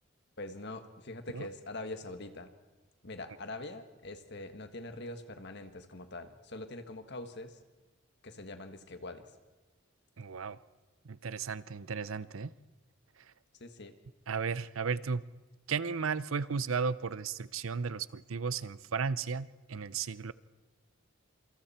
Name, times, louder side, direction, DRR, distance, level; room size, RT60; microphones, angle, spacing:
voice 1, 0.4-2.5 3.0-7.6 8.2-9.3 13.6-13.9, left 2 dB, 55° left, 8 dB, 1.7 m, -43 dB
voice 2, 10.2-10.6 11.0-12.5 14.3-15.2 15.7-20.3, right 5 dB, 80° right, 17 dB, 0.7 m, -34 dB
27.5 x 26.0 x 4.4 m, 1.2 s
head